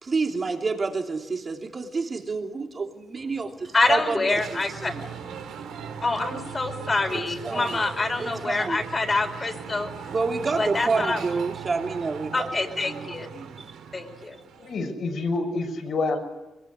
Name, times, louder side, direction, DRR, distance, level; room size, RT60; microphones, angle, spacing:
voice 1, 0.0-5.0 7.1-7.8 8.2-8.8 10.1-12.5 12.9-13.1 13.3-13.5, right 4 dB, 35° right, 3 dB, 3.2 m, -29 dB
voice 2, 3.7-4.9 6.0-10.1 10.6-11.2 12.3-13.3 13.9-14.4, left 3 dB, 30° left, 5 dB, 4.4 m, -26 dB
sound 1, 4.3-14.8, right 7 dB, 85° right, 2.8 m, -38 dB
voice 3, 14.6-16.3, left 3 dB, 65° left, 3 dB, 6.2 m, -27 dB
22.0 x 22.0 x 9.7 m, 1.1 s
cardioid pair, 90°, 0 cm